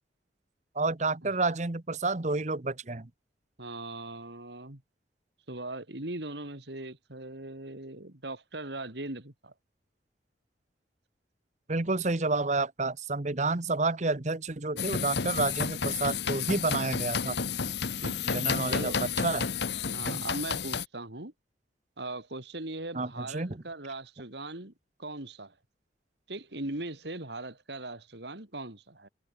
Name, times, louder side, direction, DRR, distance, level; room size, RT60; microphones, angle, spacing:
voice 1, 0.7-3.1 11.7-17.4 18.2-18.9 19.2-19.5 20.0-20.2 22.9-23.6, right 3 dB, 40° right, 1.0 m, -30 dB
voice 2, 3.6-4.8 5.5-9.5 18.0-19.0 19.9-21.3 22.0-24.7 25.0-25.5 26.3-29.1, right 2 dB, 70° right, 3.2 m, -39 dB
sound 1, 14.8-20.9, left 6 dB, 70° left, 1.1 m, -31 dB
head